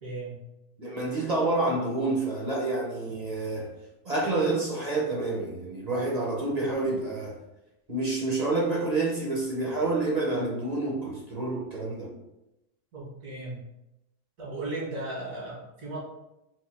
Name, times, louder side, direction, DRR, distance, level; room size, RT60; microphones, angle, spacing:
voice 1, 0.0-0.4 12.9-13.6 14.4-16.0, right 2 dB, 80° right, -4 dB, 2.1 m, -36 dB
voice 2, 0.8-3.7 4.0-7.4 7.9-12.1, right 2 dB, 40° right, -2 dB, 0.6 m, -28 dB
4.0 x 2.6 x 4.2 m, 0.91 s
omnidirectional pair, 1.6 m